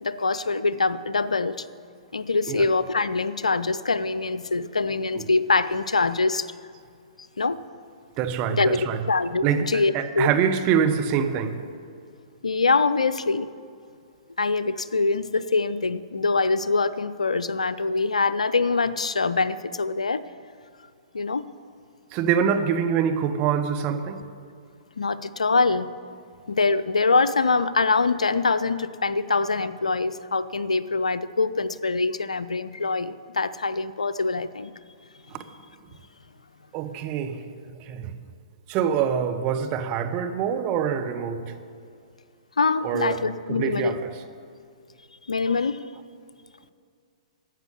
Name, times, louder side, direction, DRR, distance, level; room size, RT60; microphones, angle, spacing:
voice 1, 0.0-1.7 2.1-6.5 7.4-7.6 8.5-10.3 12.4-13.5 14.4-20.2 21.1-21.4 25.0-25.9 26.5-34.7 42.6-44.0 45.3-45.8, left 3 dB, 85° left, 15 dB, 0.5 m, -24 dB
voice 2, 8.2-9.0 9.4-11.6 22.1-24.2 35.3-35.4 36.7-37.4 37.8-38.1 38.7-41.5 42.8-43.2 43.5-44.1, right 7 dB, 35° right, 8 dB, 1.1 m, -25 dB
12.5 x 8.0 x 8.4 m, 2.3 s
hypercardioid pair, 120°, 3 cm